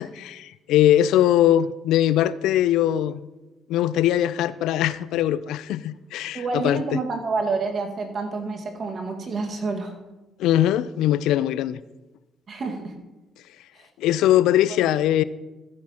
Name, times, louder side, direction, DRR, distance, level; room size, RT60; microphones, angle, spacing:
voice 1, 0.0-3.2 3.7-7.0 10.4-11.8 14.0-15.2, left 12 dB, 75° left, 0.3 m, -21 dB
voice 2, 6.3-9.9 12.5-12.9 13.8-13.9, right 3 dB, 50° right, 1.7 m, -28 dB
14.0 x 8.4 x 2.9 m
hypercardioid pair, 55°, 0 cm